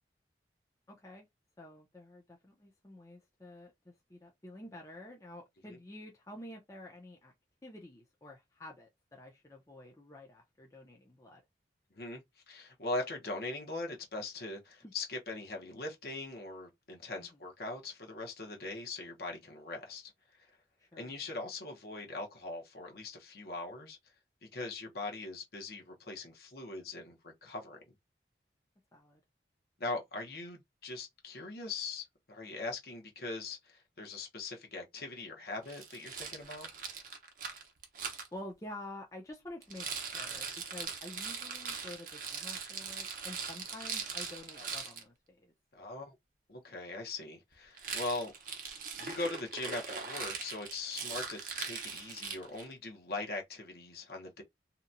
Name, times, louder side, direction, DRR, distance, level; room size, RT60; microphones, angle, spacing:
voice 1, 0.9-1.3 1.6-7.3 7.6-11.4 14.8-14.9 17.2-17.4 20.8-21.1 28.9-29.2 38.3-45.5, left 1 dB, 20° left, 0.6 m, -49 dB
voice 2, 12.0-20.1 21.0-24.0 24.5-27.8 29.8-36.7 44.6-44.7 45.7-46.2 46.5-48.3 49.0-54.4, left 2 dB, 60° left, 0.9 m, -41 dB
Rattle, 35.7-38.3 39.6-45.0 47.7-52.7, right 5 dB, 50° right, 0.7 m, -41 dB
2.8 x 2.2 x 2.5 m
head